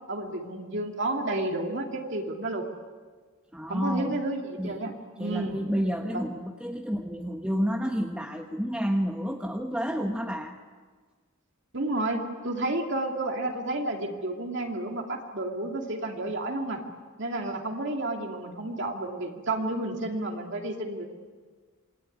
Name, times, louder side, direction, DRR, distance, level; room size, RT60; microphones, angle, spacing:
voice 1, 0.1-2.6 3.7-4.9 5.2-5.6 6.1-6.2 11.7-16.8 17.2-21.1, right 2 dB, 55° right, 1 dB, 2.8 m, -31 dB
voice 2, 3.5-4.2 4.6-10.5, equal, 5° right, 1 dB, 1.4 m, -30 dB
27.5 x 22.5 x 9.5 m, 1.5 s
head